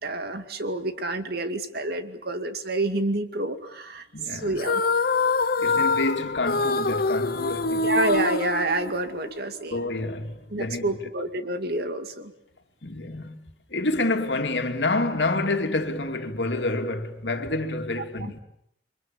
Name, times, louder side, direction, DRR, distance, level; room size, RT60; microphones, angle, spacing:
voice 1, 0.0-4.8 7.8-9.8 10.5-12.3 18.2-18.3, right 2 dB, 60° right, 2.4 m, -28 dB
voice 2, 4.1-4.6 5.6-7.9 9.7-10.9 12.8-13.4 13.7-18.4, left 2 dB, 80° left, 2.7 m, -28 dB
sound 1, 4.6-9.4, left 3 dB, 55° left, 1.0 m, -25 dB
29.5 x 24.5 x 7.2 m
head